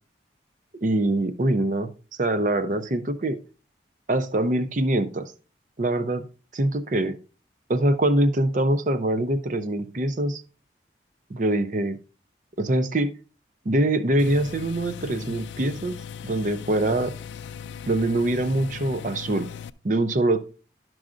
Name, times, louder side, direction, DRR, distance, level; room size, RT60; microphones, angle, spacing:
voice 1, 0.8-3.4 4.1-5.3 5.8-6.3 6.5-7.2 7.7-10.4 11.3-12.0 12.6-13.1 13.7-16.0 16.2-17.1 17.9-19.5 19.8-20.4, right 1 dB, 45° right, 12 dB, 0.5 m, -24 dB
sound 1, 14.2-19.7, left 7 dB, 80° left, 0.3 m, -38 dB
11.5 x 6.2 x 2.5 m, 0.35 s
head